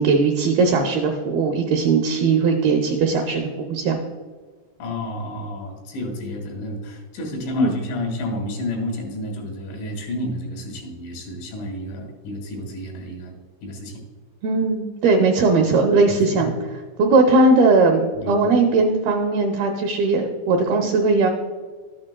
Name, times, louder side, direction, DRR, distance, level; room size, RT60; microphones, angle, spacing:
voice 1, 0.0-4.0 7.6-7.7 14.4-16.5 17.0-21.3, right 3 dB, 85° right, 1 dB, 2.1 m, -19 dB
voice 2, 4.8-13.3 13.6-14.0 16.1-16.4 18.2-18.4, left 1 dB, 90° left, 0 dB, 4.5 m, -31 dB
13.0 x 8.6 x 2.2 m, 1.4 s
omnidirectional pair, 5.2 m